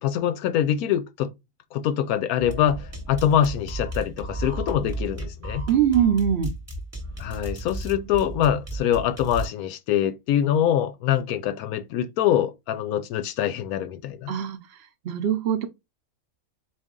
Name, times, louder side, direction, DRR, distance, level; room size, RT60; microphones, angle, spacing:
voice 1, 0.0-1.3 1.7-5.7 7.2-14.3, left 10 dB, 80° left, 1.1 m, -24 dB
sound 1, 2.4-9.5, right 2 dB, 15° right, 0.7 m, -34 dB
voice 2, 5.7-6.5 14.3-14.6 15.0-15.7, right 9 dB, 60° right, 0.7 m, -22 dB
4.1 x 2.7 x 3.6 m
omnidirectional pair, 1.5 m